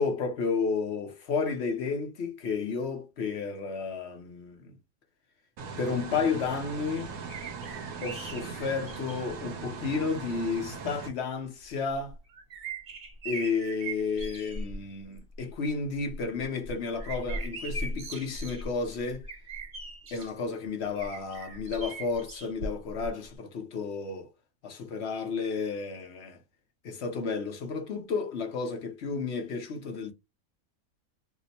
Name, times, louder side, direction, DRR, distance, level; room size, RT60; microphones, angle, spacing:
voice 1, 0.0-4.8 5.8-7.1 8.0-12.1 13.2-19.3 20.1-24.3 24.6-26.4 26.8-30.1, left 5 dB, 55° left, 0.9 m, -32 dB
sound 1, 5.6-11.1, right 5 dB, 65° right, 1.1 m, -40 dB
sound 2, 7.3-9.3 10.2-10.3 11.9-14.8 15.1-15.5 15.9-20.3 20.9-23.1 23.3-23.4, right 2 dB, 50° right, 1.3 m, -39 dB
2.9 x 2.0 x 4.0 m
omnidirectional pair, 1.6 m